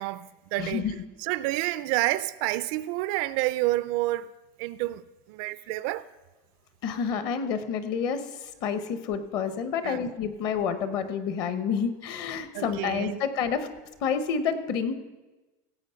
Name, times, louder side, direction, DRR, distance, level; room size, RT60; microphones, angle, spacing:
voice 1, 0.0-0.8 1.2-4.3 4.6-5.0 5.3-6.0 9.8-10.0 12.5-13.2, right 17 dB, 50° right, 0.3 m, -29 dB
voice 2, 0.6-1.0 6.8-13.7 14.0-14.9, left 6 dB, 40° left, 0.9 m, -29 dB
17.0 x 7.6 x 5.6 m
cardioid pair, 180°, 10 cm